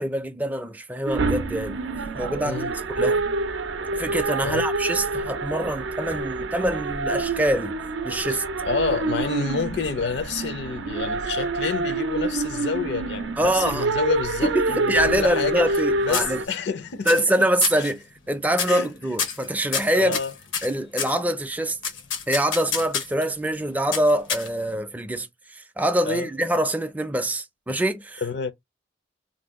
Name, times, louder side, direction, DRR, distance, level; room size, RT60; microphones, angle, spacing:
voice 1, 0.0-1.8 2.1-2.6 2.9-3.2 3.9-7.7 8.0-8.4 13.4-13.9 14.4-16.4 17.1-20.2 20.6-21.8 22.3-25.3 25.5-28.2, right 1 dB, 10° right, 0.4 m, -24 dB
sound 1, 1.1-16.4, right 3 dB, 75° right, 0.4 m, -27 dB
voice 2, 8.3-15.7 16.0-17.4 17.8-17.9 18.7-18.9 19.9-20.3 26.0-26.3 28.2-28.5, left 5 dB, 60° left, 0.5 m, -28 dB
sound 2, 14.9-15.8 16.1-16.7 17.1-17.4 17.6-17.9 18.5-18.9 19.2-21.2 21.8-23.2 23.9-24.8, left 6 dB, 85° left, 0.9 m, -28 dB
2.7 x 2.2 x 3.5 m
head